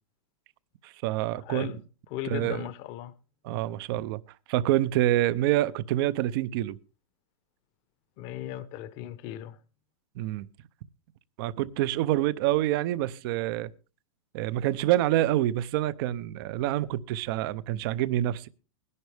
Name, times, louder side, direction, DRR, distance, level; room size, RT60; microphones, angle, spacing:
voice 1, 0.8-1.8 2.2-2.6 3.4-4.2 4.5-6.8 10.2-10.5 11.4-13.7 14.3-18.5, right 14 dB, 45° right, 0.6 m, -27 dB
voice 2, 1.4-1.8 2.1-3.1 8.2-9.6, left 13 dB, 35° left, 0.8 m, -37 dB
20.0 x 11.0 x 3.4 m
supercardioid pair, 150°, 17 cm